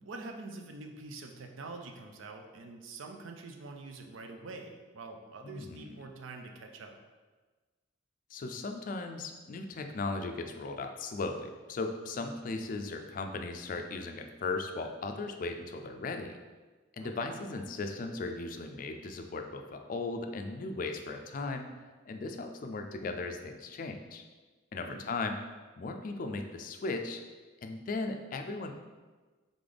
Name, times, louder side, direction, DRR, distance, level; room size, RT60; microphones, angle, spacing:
voice 1, 0.0-7.0 17.0-17.4 24.8-25.1, right 3 dB, 85° right, 4 dB, 0.5 m, -45 dB
voice 2, 5.4-5.9 8.3-16.4 16.9-21.7 22.1-24.2 24.7-25.4 25.8-27.2 27.6-28.7, left 3 dB, 45° left, 5 dB, 0.3 m, -37 dB
3.7 x 3.3 x 3.9 m, 1.3 s
head